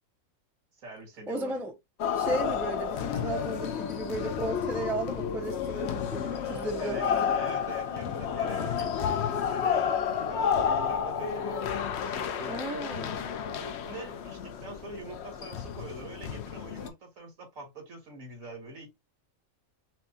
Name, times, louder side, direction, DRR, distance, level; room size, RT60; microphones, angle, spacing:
voice 1, 0.7-1.6 6.4-13.0 13.5-18.9, right 2 dB, 90° right, 2.1 m, -44 dB
voice 2, 1.3-1.7 2.2-7.3 8.5-8.6 12.5-13.2, right 2 dB, 5° right, 0.3 m, -34 dB
sound 1, 2.0-16.9, left 7 dB, 65° left, 0.8 m, -31 dB
5.8 x 2.1 x 2.7 m
omnidirectional pair, 1.4 m